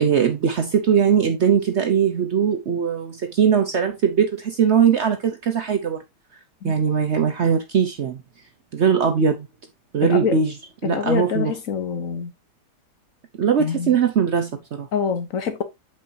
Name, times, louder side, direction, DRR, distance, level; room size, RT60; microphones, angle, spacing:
voice 1, 0.0-6.0 6.6-8.2 8.7-9.5 9.9-10.6 10.8-11.5 13.4-14.9, right 7 dB, 55° right, 0.8 m, -20 dB
voice 2, 10.0-10.4 10.8-12.3 13.6-14.0 14.9-15.6, left 7 dB, 55° left, 1.2 m, -25 dB
8.0 x 5.4 x 2.6 m
omnidirectional pair, 1.8 m